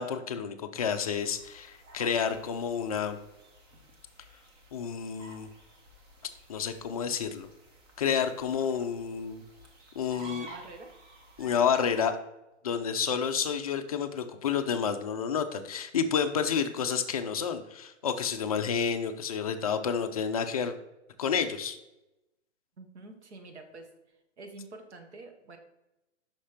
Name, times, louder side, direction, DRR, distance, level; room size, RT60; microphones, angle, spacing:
voice 1, 0.0-3.2 4.7-5.5 6.5-7.5 8.0-9.4 10.0-10.5 11.4-12.2 12.6-20.8 21.2-21.8, left 7 dB, 30° left, 7 dB, 0.4 m, -30 dB
sound 1, 0.9-12.0, right 2 dB, 20° right, 0.7 m, -52 dB
voice 2, 10.1-10.9 22.8-23.9 24.4-25.6, right 3 dB, 65° right, 5 dB, 1.4 m, -47 dB
5.7 x 4.3 x 4.9 m, 0.94 s
hypercardioid pair, 150°, 36 cm